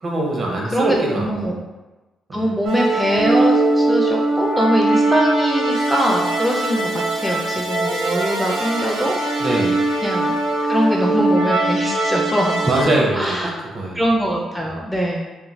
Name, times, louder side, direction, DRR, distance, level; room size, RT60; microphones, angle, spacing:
voice 1, 0.0-1.5 2.3-2.4 9.4-9.8 12.6-14.0, right 2 dB, 45° right, -2 dB, 0.7 m, -22 dB
voice 2, 0.7-1.6 2.3-9.4 10.0-10.3 10.6-12.7 13.1-13.6 13.9-15.3, equal, ahead, -1 dB, 0.3 m, -22 dB
sound 1, 2.7-12.8, right 2 dB, 85° right, 0.5 m, -20 dB
2.4 x 2.2 x 3.1 m, 1.1 s
cardioid pair, 90°, 0 cm